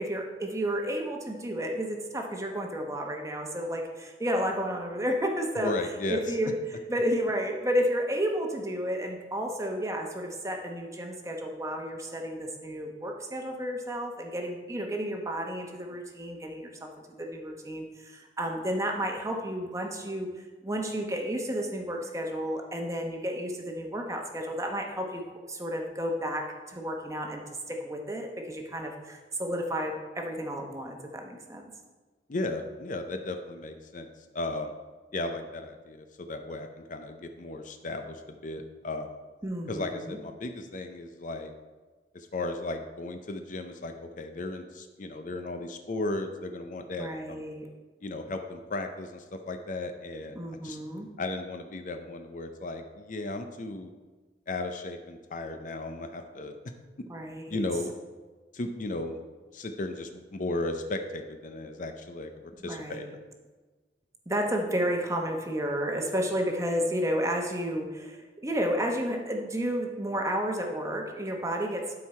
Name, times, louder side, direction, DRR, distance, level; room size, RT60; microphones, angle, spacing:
voice 1, 0.0-5.7 6.1-16.9 17.2-25.2 25.5-31.6 39.4-40.2 47.0-47.7 50.4-51.1 57.1-57.6 62.6-63.1 64.3-71.9, equal, 20° right, 2 dB, 1.0 m, -32 dB
voice 2, 5.6-6.2 32.3-34.1 34.3-34.7 35.1-39.2 39.7-41.5 42.1-47.4 48.0-50.8 51.2-53.9 54.5-56.6 57.5-57.9 58.5-59.2 59.5-63.0, left 2 dB, 45° left, 6 dB, 0.6 m, -35 dB
12.0 x 4.7 x 4.4 m, 1.3 s
head